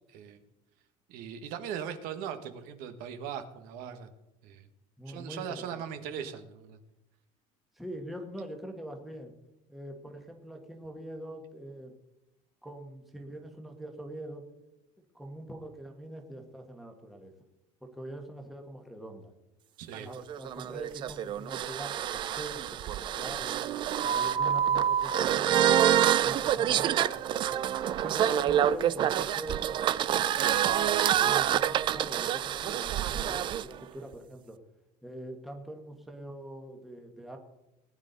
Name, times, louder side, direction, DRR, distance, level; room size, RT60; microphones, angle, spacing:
voice 1, 0.1-0.4 1.1-4.1 4.4-4.7 5.1-6.8 19.8-20.1, right 8 dB, 60° right, 8 dB, 1.4 m, -39 dB
voice 2, 5.0-5.8 7.7-9.3 9.7-11.9 12.6-14.4 15.1-17.3 17.8-19.3 20.0-23.6 24.0-25.8 26.2-27.7 28.0-30.5 31.2-34.6 35.0-37.4, right 1 dB, ahead, 2 dB, 1.4 m, -43 dB
sound 1, 19.9-33.6, right 10 dB, 30° right, 0.4 m, -27 dB
19.5 x 10.0 x 4.0 m, 0.90 s
cardioid pair, 170°, 16 cm